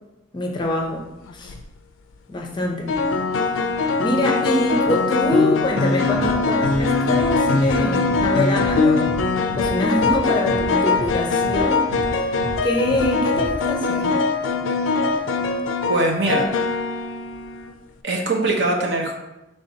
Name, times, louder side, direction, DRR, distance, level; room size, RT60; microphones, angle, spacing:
voice 1, 0.3-1.0 1.3-1.5 2.3-2.9 3.6-3.7 4.0-9.0 9.3-12.3 12.6-14.2, left 1 dB, 25° left, 0 dB, 0.5 m, -24 dB
sound 1, 1.3-1.6 2.9-17.7, left 4 dB, 85° left, 0.4 m, -21 dB
sound 2, 6.1-6.3 6.6-6.8 7.1-7.3 7.6-7.7 8.0-8.2 8.5-8.7 9.0-9.2 9.5-9.7 10.0-10.1 10.5-10.6 10.9-11.1 11.4-11.6 11.9-12.1 12.4-12.5 12.9-13.0 13.3-13.5, left 1 dB, 45° right, 1.4 m, -32 dB
voice 2, 15.9-16.5 18.0-19.1, right 2 dB, 60° right, 1 dB, 0.7 m, -21 dB
5.5 x 3.3 x 2.7 m, 0.96 s
head